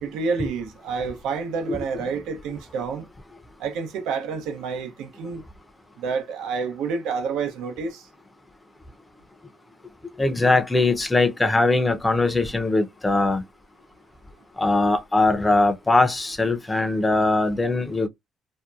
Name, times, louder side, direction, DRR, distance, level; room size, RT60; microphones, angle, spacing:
voice 1, 0.0-3.1 3.6-5.4 6.0-8.1, right 5 dB, 85° right, 0.7 m, -29 dB
voice 2, 10.2-13.4 14.6-18.1, left 2 dB, 15° left, 0.6 m, -21 dB
2.7 x 2.2 x 2.4 m
cardioid pair, 95°, 0 cm